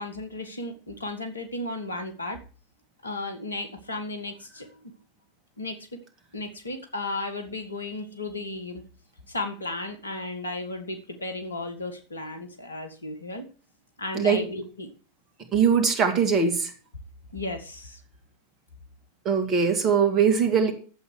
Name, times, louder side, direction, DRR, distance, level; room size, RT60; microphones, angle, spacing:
voice 1, 0.0-2.4 3.0-4.7 5.6-5.8 6.3-8.8 9.3-13.5 14.0-14.9 17.3-18.0, left 2 dB, 75° left, 6 dB, 1.8 m, -34 dB
voice 2, 15.5-16.7 19.2-20.7, right 6 dB, 30° right, 6 dB, 2.4 m, -21 dB
11.5 x 8.0 x 4.9 m, 0.39 s
figure-of-eight pair, 90°, 0 cm